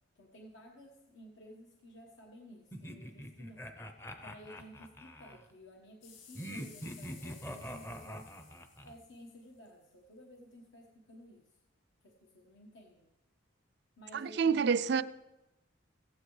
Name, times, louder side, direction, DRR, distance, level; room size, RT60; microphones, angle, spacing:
voice 1, 0.1-3.7 4.2-8.3 8.8-11.6 12.0-13.1 14.0-15.0, equal, 70° left, 1.3 m, -54 dB
sound 1, 2.7-5.4 6.3-8.9, equal, 15° left, 0.6 m, -44 dB
sound 2, 6.0-9.7 10.3-10.4, left 6 dB, 55° left, 5.5 m, -57 dB
voice 2, 14.1-15.0, right 6 dB, 60° right, 0.4 m, -28 dB
16.5 x 15.0 x 3.2 m
head